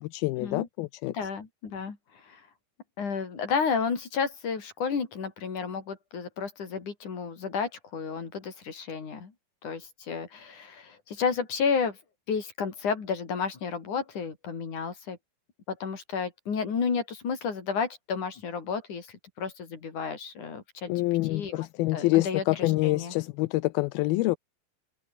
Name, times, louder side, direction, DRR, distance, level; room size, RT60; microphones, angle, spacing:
voice 1, 0.0-1.1 20.9-24.4, left 20 dB, 80° left, 2.3 m, -26 dB
voice 2, 1.1-2.0 2.2-2.4 3.0-9.3 9.6-12.0 12.3-15.2 15.7-20.9 21.3-21.7 21.9-23.1, left 5 dB, 50° left, 5.1 m, -32 dB
open air
omnidirectional pair, 4.7 m